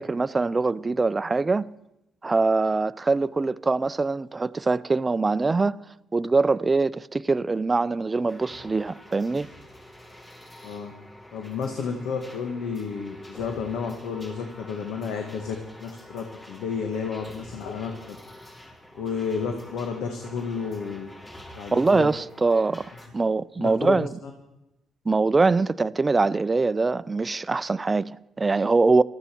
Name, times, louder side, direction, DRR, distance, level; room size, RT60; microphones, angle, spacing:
voice 1, 0.0-1.7 2.2-5.8 6.1-9.5 21.7-24.1 25.1-29.0, right 3 dB, 25° right, 0.5 m, -23 dB
sound 1, 8.3-23.1, left 1 dB, 25° left, 6.0 m, -46 dB
voice 2, 11.3-18.2 18.9-21.1 21.6-22.1 23.6-24.3, left 5 dB, 85° left, 1.5 m, -31 dB
19.5 x 14.0 x 4.5 m
cardioid pair, 90°, 0 cm